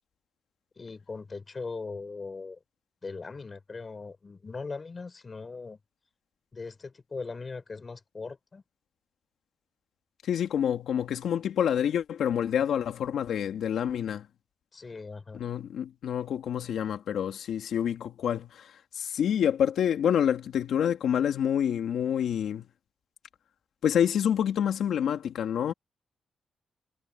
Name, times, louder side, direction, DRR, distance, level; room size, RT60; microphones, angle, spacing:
voice 1, 0.8-2.6 3.0-5.8 6.5-8.6 14.7-15.4, left 4 dB, 25° left, 4.8 m, -39 dB
voice 2, 10.2-14.3 15.3-22.7 23.8-25.7, left 9 dB, 75° left, 2.7 m, -27 dB
wide cardioid pair, 175°, 0 cm